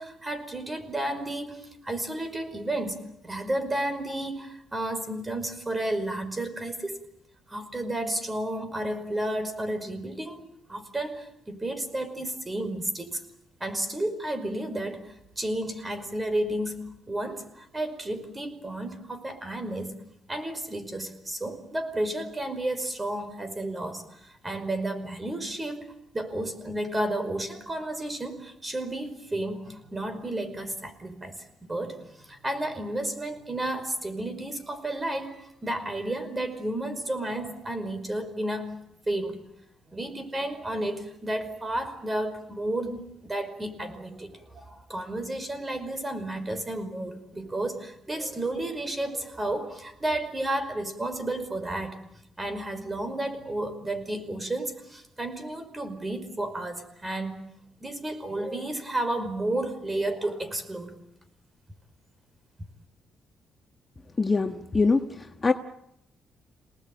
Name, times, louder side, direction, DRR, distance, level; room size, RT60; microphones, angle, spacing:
voice 1, 0.0-7.0 7.5-10.4 10.7-13.2 13.6-20.0 20.3-25.9 26.1-38.8 39.1-39.5 39.9-52.0 52.4-57.4 57.8-61.0, right 1 dB, 20° right, 9 dB, 5.2 m, -32 dB
voice 2, 64.2-65.5, left 4 dB, 25° left, 5 dB, 1.5 m, -24 dB
28.5 x 19.5 x 9.2 m, 0.81 s
cardioid pair, 90°, 0 cm